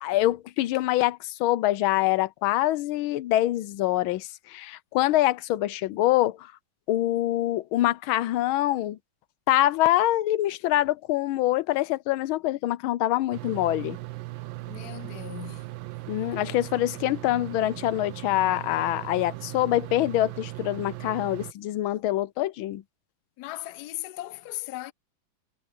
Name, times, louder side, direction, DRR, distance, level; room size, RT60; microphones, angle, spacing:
voice 1, 0.0-6.5 6.9-9.0 9.5-14.0 16.1-22.8, left 15 dB, 90° left, 1.5 m, -25 dB
sound 1, 13.3-21.5, right 19 dB, 80° right, 1.4 m, -38 dB
voice 2, 14.7-15.7 23.4-24.9, left 16 dB, 65° left, 1.1 m, -37 dB
omnidirectional pair, 2.2 m